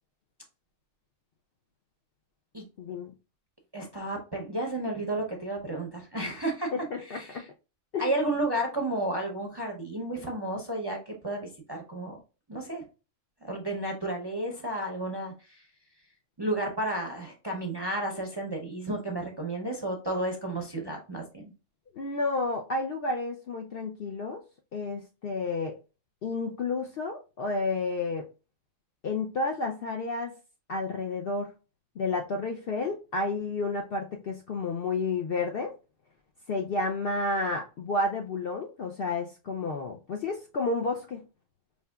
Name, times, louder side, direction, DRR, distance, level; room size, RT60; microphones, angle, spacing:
voice 1, 2.8-3.1 6.7-7.4 7.9-8.2 22.0-24.4 24.7-25.8 26.2-28.3 29.0-30.3 30.7-31.5 32.0-35.7 36.5-41.2, left 3 dB, 60° left, 0.6 m, -31 dB
voice 2, 3.7-6.7 7.0-7.4 8.0-12.2 12.5-12.8 13.4-15.6 16.4-21.4, right 1 dB, 25° right, 0.5 m, -32 dB
5.4 x 2.8 x 2.3 m
omnidirectional pair, 1.4 m